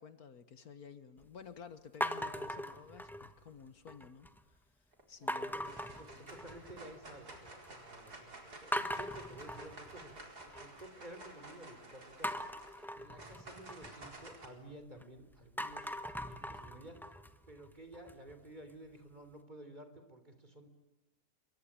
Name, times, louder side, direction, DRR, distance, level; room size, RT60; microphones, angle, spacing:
voice 1, 0.0-4.6 5.1-5.5 6.2-6.3, left 6 dB, 65° left, 11 dB, 1.8 m, -53 dB
sound 1, 2.0-3.5 3.9-4.4 5.3-6.8 7.1-7.7 8.1-8.2 8.7-10.8 12.2-15.0 15.4-18.3, equal, ahead, 1.1 m, -41 dB
sound 2, 4.9-5.3 5.6-14.5, right 2 dB, 75° right, 4.9 m, -53 dB
voice 2, 5.3-10.1 10.4-12.5 12.9-17.1 17.5-20.7, right 1 dB, 25° right, 8 dB, 3.8 m, -53 dB
28.0 x 23.5 x 8.8 m, 0.99 s
omnidirectional pair, 1.7 m